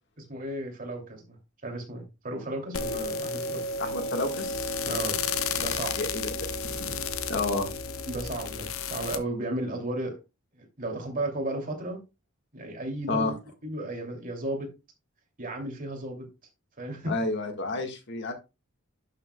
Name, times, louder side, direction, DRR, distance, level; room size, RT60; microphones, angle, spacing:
voice 1, 0.3-1.4 1.6-3.6 4.9-5.2 5.6-6.0 8.1-10.2 10.6-12.0 12.5-13.3 13.6-14.7 15.4-16.3 16.8-17.1, right 1 dB, 40° right, 2.6 m, -34 dB
sound 1, 2.7-9.2, left 4 dB, 70° left, 0.8 m, -32 dB
voice 2, 3.8-4.7 5.9-7.0 7.3-7.7 13.1-13.3 17.1-18.3, left 3 dB, 55° left, 1.6 m, -30 dB
11.5 x 6.7 x 2.2 m
head